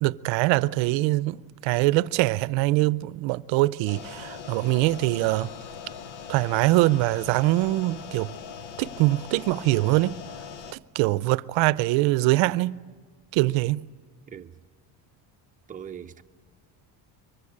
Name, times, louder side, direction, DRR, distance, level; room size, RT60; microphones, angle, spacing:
voice 1, 0.0-5.5 6.3-8.3 8.8-10.2 10.7-12.8 13.3-13.8, right 19 dB, 70° right, 0.7 m, -23 dB
sound 1, 3.9-10.7, left 7 dB, 90° left, 1.2 m, -41 dB
voice 2, 15.7-16.2, right 8 dB, 15° right, 0.7 m, -40 dB
24.5 x 23.0 x 8.6 m
cardioid pair, 150°, 46 cm